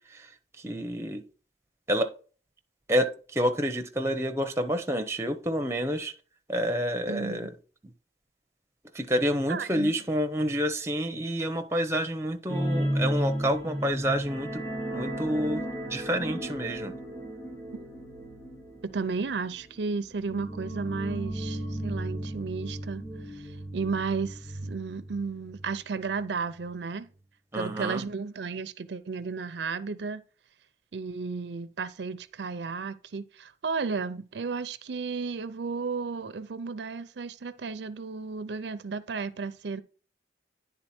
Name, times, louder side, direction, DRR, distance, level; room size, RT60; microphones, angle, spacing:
voice 1, 0.6-1.2 1.9-2.1 2.9-6.1 6.5-7.5 7.8-7.9 8.9-16.9 27.5-28.0, equal, 15° right, 0.7 m, -29 dB
voice 2, 7.1-7.5 9.5-9.9 18.8-27.1 27.5-30.2 30.9-39.8, right 4 dB, 75° right, 0.5 m, -33 dB
sound 1, 12.5-25.7 26.0-26.2 26.6-26.7, right 1 dB, 15° left, 2.8 m, -34 dB
9.9 x 3.8 x 4.2 m
head